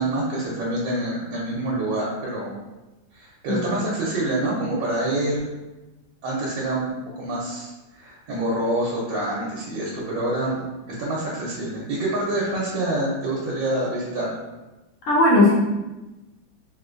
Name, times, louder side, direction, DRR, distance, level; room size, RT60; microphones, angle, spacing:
voice 1, 0.0-2.5 3.1-5.4 6.2-14.3, right 1 dB, 70° right, -5 dB, 1.3 m, -26 dB
voice 2, 3.5-3.8 15.1-15.5, left 2 dB, 60° left, -4 dB, 0.8 m, -18 dB
3.9 x 2.6 x 2.4 m, 1.1 s
omnidirectional pair, 2.2 m